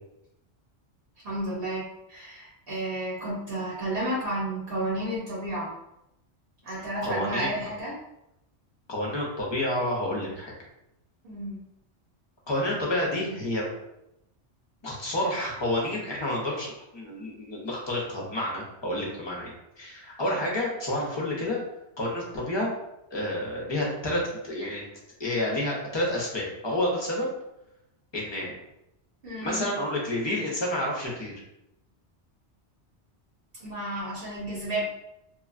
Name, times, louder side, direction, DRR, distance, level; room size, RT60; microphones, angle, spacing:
voice 1, 1.2-5.7 6.6-8.0 11.2-11.6 29.2-29.6 33.6-34.8, right 1 dB, 55° right, -6 dB, 0.9 m, -32 dB
voice 2, 7.0-7.6 8.9-10.5 12.5-13.7 14.8-21.6 22.0-22.7 23.1-24.8 25.2-27.3 28.1-28.5 29.4-31.3, left 1 dB, 35° left, -3 dB, 0.5 m, -29 dB
2.9 x 2.2 x 2.4 m, 0.85 s
omnidirectional pair, 1.2 m